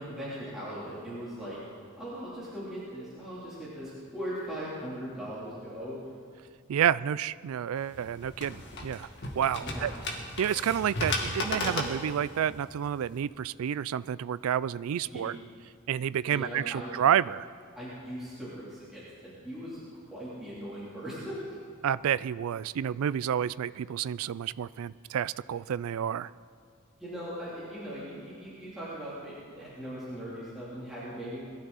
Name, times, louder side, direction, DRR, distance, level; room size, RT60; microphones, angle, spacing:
voice 1, 0.0-1.6 2.0-6.0 9.6-9.9 15.0-15.3 16.3-16.9 17.8-19.8 20.1-21.6 27.0-31.5, equal, ahead, -11 dB, 3.3 m, -39 dB
voice 2, 6.7-9.1 9.4-9.9 10.4-15.4 15.9-17.5 21.8-26.3, right 9 dB, 80° right, 18 dB, 0.3 m, -29 dB
sound 1, 7.8-13.2, left 2 dB, 55° left, 2.0 m, -35 dB
22.0 x 13.5 x 4.1 m, 2.3 s
head